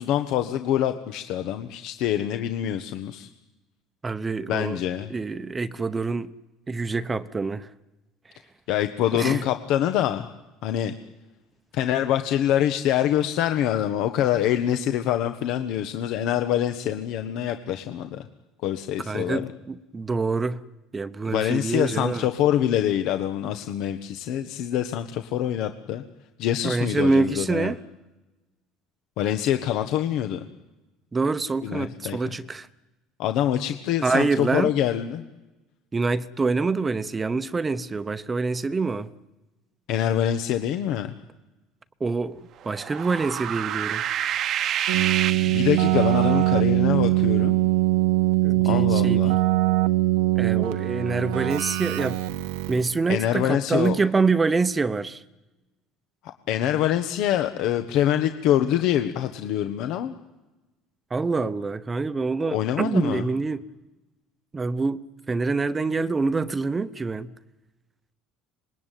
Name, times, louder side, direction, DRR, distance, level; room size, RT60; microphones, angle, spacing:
voice 1, 0.0-3.3 4.5-5.1 8.7-10.3 10.6-10.9 11.7-18.3 18.6-19.5 21.3-26.0 26.4-27.7 29.2-30.4 31.6-32.3 33.2-35.2 39.9-41.1 45.4-47.6 48.6-49.4 53.1-53.9 56.5-60.1 62.5-63.2, left 11 dB, 65° left, 1.3 m, -25 dB
voice 2, 4.0-4.8 5.1-6.3 6.7-7.7 9.1-9.4 19.1-20.6 20.9-22.3 26.6-27.8 31.1-32.7 34.0-34.7 35.9-39.1 42.0-44.0 48.4-49.4 50.4-52.2 52.7-55.2 61.1-63.6 64.5-65.0 65.3-67.3, right 4 dB, 20° right, 0.9 m, -26 dB
sound 1, 42.6-46.4, right 10 dB, 50° right, 1.0 m, -28 dB
Keyboard (musical), 44.9-53.0, right 18 dB, 90° right, 1.3 m, -22 dB
25.5 x 20.5 x 9.3 m
cardioid pair, 120°, 0 cm